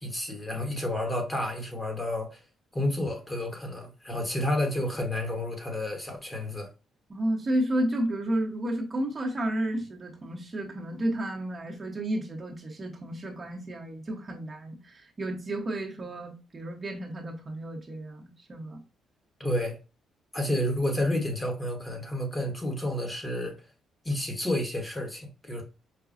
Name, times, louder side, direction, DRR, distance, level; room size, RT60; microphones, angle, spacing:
voice 1, 0.0-2.4 2.7-6.7 19.4-19.8 20.3-23.6 24.0-25.6, left 1 dB, 20° left, 1.2 m, -30 dB
voice 2, 7.1-18.8, right 1 dB, 30° right, 0.9 m, -32 dB
4.8 x 2.3 x 2.5 m
cardioid pair, 90°, 0 cm